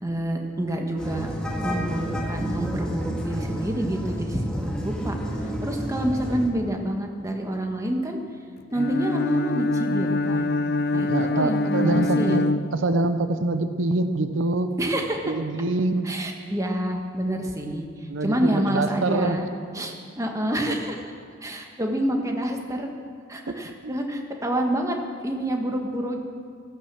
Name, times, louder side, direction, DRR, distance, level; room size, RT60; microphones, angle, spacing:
voice 1, 0.0-1.3 1.6-5.1 5.4-8.2 8.7-10.5 10.9-11.1 11.4-12.5 14.8-15.3 16.0-19.5 19.7-21.1 21.4-22.9 23.3-25.0 25.2-26.2, right 1 dB, 15° right, 2 dB, 1.5 m, -28 dB
sound 1, 1.0-6.5, equal, 5° left, 1.9 m, -30 dB
Bowed string instrument, 8.7-13.3, left 2 dB, 55° left, 0.5 m, -25 dB
voice 2, 11.1-12.4 12.7-14.7 15.2-16.1 18.1-19.4 23.5-23.6 23.8-24.0, right 2 dB, 80° right, 9 dB, 0.8 m, -25 dB
15.0 x 14.5 x 6.1 m, 2.2 s
head